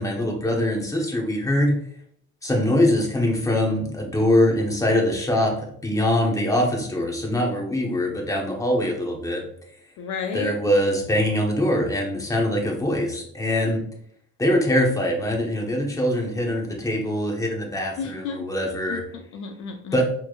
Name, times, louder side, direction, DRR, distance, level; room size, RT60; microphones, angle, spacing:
voice 1, 0.0-1.7 2.4-9.4 10.3-13.8 14.4-19.0 19.9-20.0, left 1 dB, 10° left, 0 dB, 0.9 m, -23 dB
voice 2, 10.0-10.6 18.0-18.5 18.9-20.0, left 5 dB, 60° left, 5 dB, 0.5 m, -32 dB
4.3 x 3.1 x 2.4 m, 0.67 s
cardioid pair, 110°, 33 cm